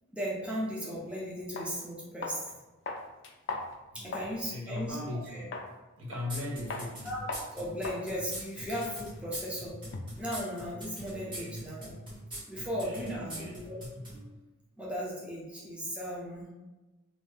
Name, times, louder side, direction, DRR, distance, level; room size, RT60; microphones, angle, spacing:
voice 1, 0.1-2.4 3.9-5.0 5.3-5.4 7.0-9.8 10.2-11.9 12.5-13.8 14.1-14.4 14.8-16.5, equal, 5° right, -6 dB, 0.5 m, -36 dB
sound 1, 1.0-1.1 1.6-1.7 2.2-2.5 2.9-4.4 4.8-4.9 5.5-5.7 6.1-6.4 6.7-6.9 7.3-7.5 7.8-8.0 8.3-10.3, left 3 dB, 55° left, 0.4 m, -40 dB
voice 2, 3.9-5.6 6.0-7.1 11.1-11.7 12.8-14.1, left 2 dB, 70° right, -2 dB, 0.7 m, -40 dB
sound 2, 6.3-14.2, right 1 dB, 25° right, 0.9 m, -42 dB
2.6 x 2.1 x 3.3 m, 1.1 s
head